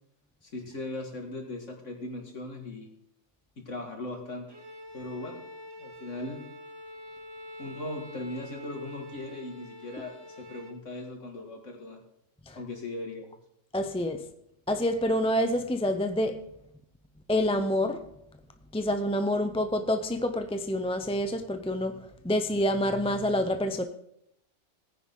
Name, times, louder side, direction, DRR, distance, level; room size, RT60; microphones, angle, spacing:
voice 1, 0.4-2.9 3.7-4.5 4.9-5.4 5.8-6.4 7.6-12.0 12.5-13.3, left 2 dB, 85° left, 2 dB, 2.7 m, -38 dB
Bowed string instrument, 4.5-10.8, left 1 dB, 20° right, 1.3 m, -46 dB
voice 2, 13.7-14.2 14.7-16.4 17.3-18.0 18.7-23.8, left 1 dB, 5° left, 7 dB, 0.6 m, -27 dB
18.0 x 10.0 x 3.9 m, 0.76 s
omnidirectional pair, 1.2 m